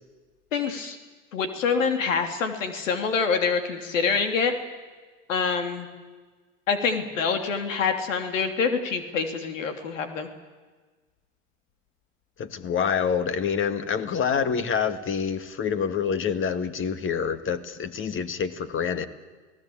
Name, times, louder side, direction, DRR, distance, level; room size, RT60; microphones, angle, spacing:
voice 1, 0.5-1.0 1.3-4.5 5.3-5.9 6.7-10.3, left 5 dB, 85° left, 6 dB, 3.1 m, -26 dB
voice 2, 12.4-19.1, left 6 dB, 35° left, 11 dB, 2.0 m, -27 dB
28.0 x 18.0 x 8.7 m, 1.4 s
hypercardioid pair, 95°, 38 cm